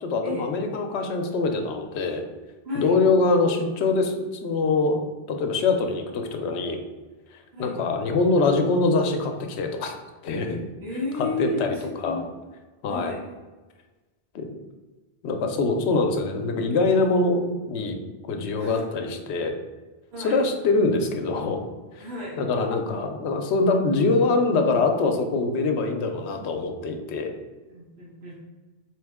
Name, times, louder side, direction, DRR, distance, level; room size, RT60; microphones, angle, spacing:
voice 1, 0.0-2.2 2.7-6.8 7.6-9.9 10.2-10.6 11.1-12.2 12.8-13.1 14.3-14.5 15.2-18.0 18.3-19.5 20.2-21.6 21.9-22.1 22.4-27.3, left 3 dB, 80° left, 5 dB, 0.9 m, -24 dB
voice 2, 10.8-12.3 12.9-13.2 18.6-18.8 20.1-20.4 22.0-22.4 27.7-28.4, left 2 dB, 70° right, -8 dB, 1.4 m, -33 dB
3.9 x 3.0 x 3.5 m, 1.3 s
omnidirectional pair, 1.1 m